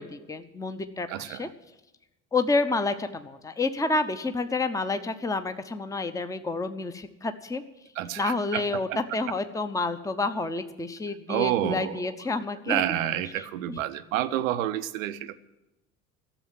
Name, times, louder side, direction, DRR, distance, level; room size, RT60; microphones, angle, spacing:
voice 1, 0.0-1.5 2.3-7.6 8.2-12.8 13.4-13.8, left 3 dB, 10° left, 9 dB, 0.8 m, -29 dB
voice 2, 1.1-1.5 8.0-8.6 11.3-12.0 12.7-15.4, right 12 dB, 75° right, 12 dB, 0.8 m, -29 dB
13.0 x 7.2 x 9.5 m, 0.97 s
hypercardioid pair, 60°, 40 cm